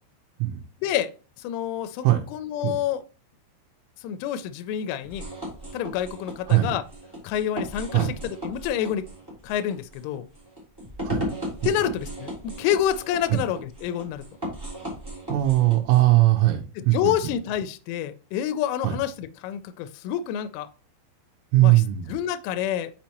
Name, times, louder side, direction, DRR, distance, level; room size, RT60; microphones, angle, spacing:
voice 1, 0.8-1.1 1.4-2.1 2.3-3.0 4.0-5.2 5.7-6.8 7.2-9.1 9.4-10.3 11.6-14.2 16.8-20.7 21.6-21.8 22.1-22.9, left 10 dB, 85° left, 10 dB, 3.1 m, -28 dB
sound 1, 5.0-16.1, equal, 10° right, 1.2 m, -36 dB
voice 2, 15.3-17.1 18.8-19.0 21.5-22.1, right 16 dB, 85° right, 0 dB, 3.3 m, -20 dB
6.2 x 5.9 x 2.9 m, 0.36 s
omnidirectional pair, 5.6 m